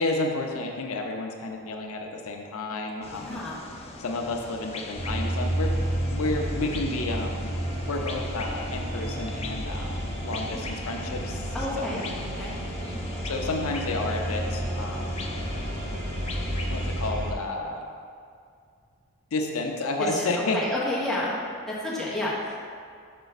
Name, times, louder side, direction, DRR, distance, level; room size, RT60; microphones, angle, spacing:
voice 1, 0.0-3.4 4.0-5.8 6.1-12.1 13.2-15.3 16.7-17.8 19.3-20.6, left 2 dB, 80° left, 2 dB, 0.6 m, -31 dB
sound 1, 3.0-17.1, left 3 dB, 30° left, 0.3 m, -41 dB
voice 2, 3.1-3.6 11.5-12.0 12.4-12.5 12.8-13.1 20.0-21.4 21.7-22.6, left 1 dB, ahead, -8 dB, 1.1 m, -30 dB
sound 2, 5.0-17.3, right 1 dB, 40° right, 0.8 m, -31 dB
5.6 x 5.0 x 4.0 m, 2.2 s
head